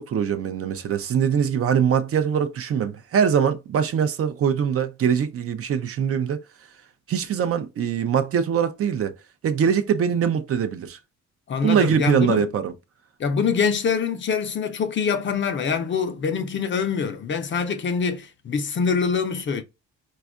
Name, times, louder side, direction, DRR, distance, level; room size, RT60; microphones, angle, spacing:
voice 1, 0.0-6.4 7.1-9.2 9.4-11.0 11.6-12.7, right 7 dB, 50° right, 0.5 m, -22 dB
voice 2, 11.5-12.5 13.2-19.6, left 6 dB, 40° left, 0.5 m, -24 dB
4.2 x 2.3 x 2.4 m
cardioid pair, 90°, 30 cm